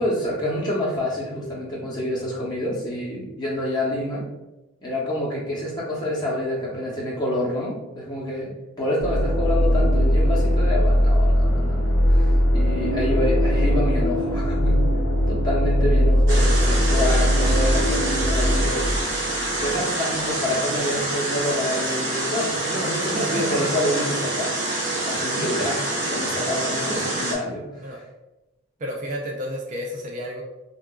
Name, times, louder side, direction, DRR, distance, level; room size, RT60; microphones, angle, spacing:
voice 1, 0.0-4.2 4.8-8.5 8.8-14.8 15.3-18.9 19.6-24.6 25.0-25.8 26.1-27.6, left 1 dB, 20° left, -6 dB, 0.8 m, -27 dB
sound 1, 9.0-19.8, equal, 75° left, 0.8 m, -20 dB
sound 2, 16.3-27.3, right 2 dB, 60° right, 0.8 m, -26 dB
voice 2, 23.1-23.6 27.8-28.0 28.8-30.4, equal, 35° right, 0 dB, 0.4 m, -30 dB
3.9 x 2.4 x 2.3 m, 1.0 s
head